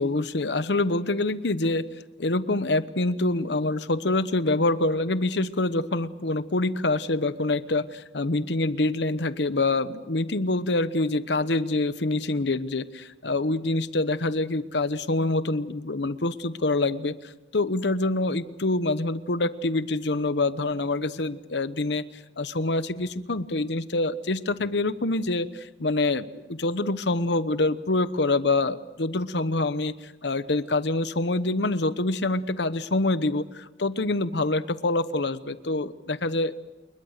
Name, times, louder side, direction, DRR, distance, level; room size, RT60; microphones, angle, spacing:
voice 1, 0.0-1.9 2.2-36.6, left 2 dB, 65° left, 14 dB, 1.0 m, -26 dB
28.0 x 21.5 x 6.6 m, 1.1 s
head